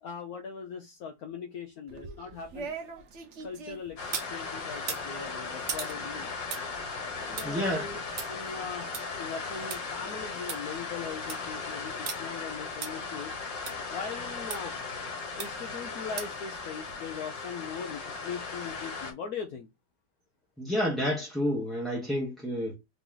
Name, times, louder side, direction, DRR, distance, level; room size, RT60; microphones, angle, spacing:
voice 1, 0.0-2.8 3.4-6.3 7.2-8.0 8.3-8.9 9.2-13.3 13.9-14.7 15.4-19.7, left 6 dB, 65° left, 1.1 m, -40 dB
sound 1, 1.9-4.3 4.8-9.8 10.2-10.3 10.5-10.6 11.0-11.5 12.1-12.2 12.8-12.9 13.7-13.8 14.5-14.6 15.4-15.7 16.2-16.5 16.9-17.0, right 6 dB, 55° right, 0.9 m, -39 dB
sound 2, 4.0-19.1, left 4 dB, 85° left, 2.0 m, -37 dB
voice 2, 7.4-7.8 20.6-22.7, equal, ahead, 0.8 m, -29 dB
3.9 x 3.0 x 3.8 m
omnidirectional pair, 1.9 m